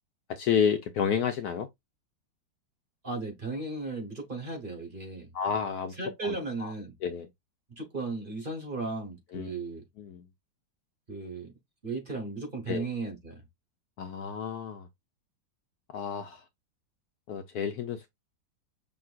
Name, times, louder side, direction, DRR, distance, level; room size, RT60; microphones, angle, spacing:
voice 1, 0.3-1.7 5.3-5.9 6.2-6.7 7.0-7.3 9.3-9.5 10.0-10.2 12.7-12.9 14.0-14.9 15.9-16.4 17.3-18.1, left 7 dB, 70° left, 1.0 m, -30 dB
voice 2, 3.0-5.3 6.0-6.9 7.8-9.8 11.1-11.5 11.8-13.4, right 3 dB, 30° right, 1.4 m, -35 dB
6.0 x 2.9 x 2.5 m
omnidirectional pair, 2.0 m